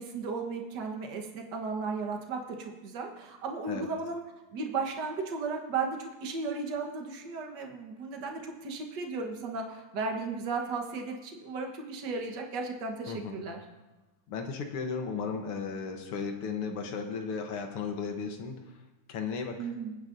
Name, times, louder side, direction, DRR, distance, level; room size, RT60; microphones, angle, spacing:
voice 1, 0.0-4.2 4.5-13.6 19.6-20.0, right 4 dB, 55° right, 2 dB, 1.9 m, -35 dB
voice 2, 13.1-13.4 14.3-18.5 19.1-19.7, left 5 dB, 85° left, 4 dB, 2.0 m, -35 dB
26.0 x 9.8 x 2.7 m, 1.1 s
omnidirectional pair, 2.4 m